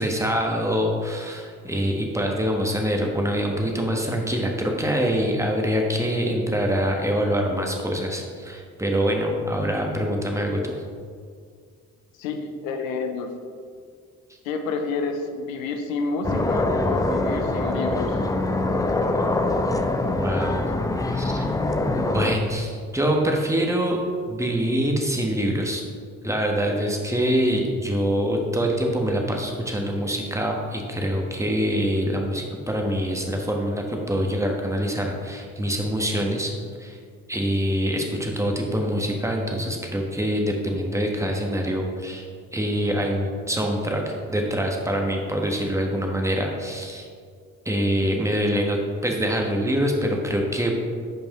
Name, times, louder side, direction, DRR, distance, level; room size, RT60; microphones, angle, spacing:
voice 1, 0.0-10.7 20.2-20.6 21.1-21.5 22.1-24.0 24.3-25.8 26.2-36.5 36.8-37.0 37.3-42.2 42.5-47.1 47.6-50.7, equal, 5° right, 1 dB, 1.3 m, -25 dB
voice 2, 12.2-13.3 14.4-18.2 24.4-24.5, left 4 dB, 80° left, 6 dB, 0.7 m, -29 dB
sound 1, 16.2-22.4, left 2 dB, 10° left, 0.4 m, -24 dB
9.0 x 5.2 x 3.1 m, 2.1 s
hypercardioid pair, 45°, 40 cm